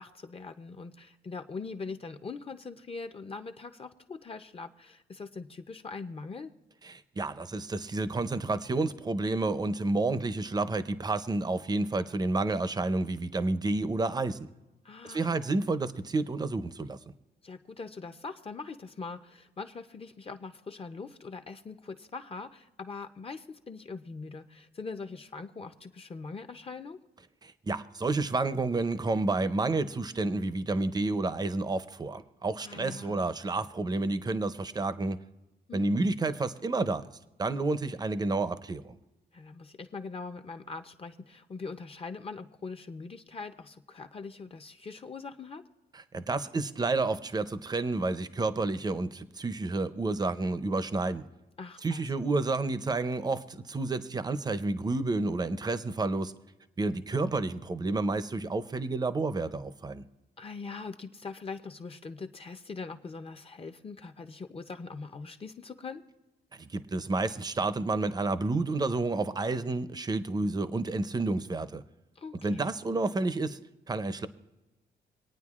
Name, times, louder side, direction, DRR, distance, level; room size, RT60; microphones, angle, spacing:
voice 1, 0.0-6.5 14.8-15.4 17.4-27.0 32.6-33.3 35.7-36.1 39.3-45.6 51.6-52.1 60.4-66.0 72.2-72.6, left 4 dB, 30° left, 8 dB, 0.5 m, -42 dB
voice 2, 7.2-14.5 15.1-17.0 27.4-35.2 35.7-37.1 37.4-39.0 46.1-51.2 51.8-56.3 56.8-60.0 66.5-71.8 72.4-73.6 73.9-74.3, right 3 dB, 20° right, 13 dB, 0.5 m, -30 dB
26.0 x 9.0 x 2.4 m, 1.0 s
cardioid pair, 105°, 18 cm